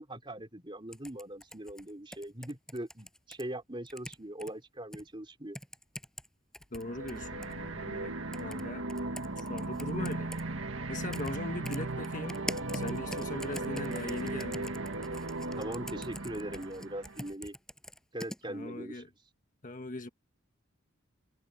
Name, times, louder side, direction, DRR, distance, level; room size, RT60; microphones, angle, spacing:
voice 1, 0.0-5.6 15.6-17.5 18.1-19.0, right 1 dB, 25° right, 4.0 m, -41 dB
sound 1, 0.9-3.4 3.9-4.5 4.9-5.0 5.5-6.3 6.5-7.5 8.3-8.6 8.9-10.4 11.1-11.4 11.6-18.4, equal, 5° left, 8.0 m, -43 dB
voice 2, 6.7-8.8 9.4-10.3 10.9-12.4 12.7-14.7 18.5-19.1 19.6-20.1, left 2 dB, 40° left, 1.5 m, -40 dB
sound 2, 6.8-17.3, right 2 dB, 70° right, 1.9 m, -37 dB
head